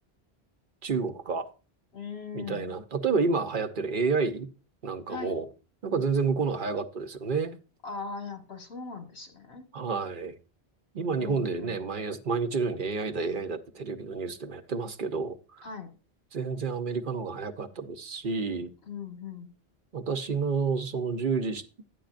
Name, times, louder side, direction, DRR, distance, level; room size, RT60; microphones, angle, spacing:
voice 1, 0.8-1.5 2.3-4.5 4.8-5.5 5.8-7.6 9.7-10.3 10.9-15.7 16.3-18.7 19.9-21.8, right 4 dB, 55° right, 0.9 m, -30 dB
voice 2, 1.9-2.8 5.1-5.3 7.8-9.7 11.2-11.8 15.6-15.9 18.9-19.5, left 5 dB, 90° left, 2.0 m, -39 dB
11.5 x 9.3 x 2.5 m
omnidirectional pair, 1.1 m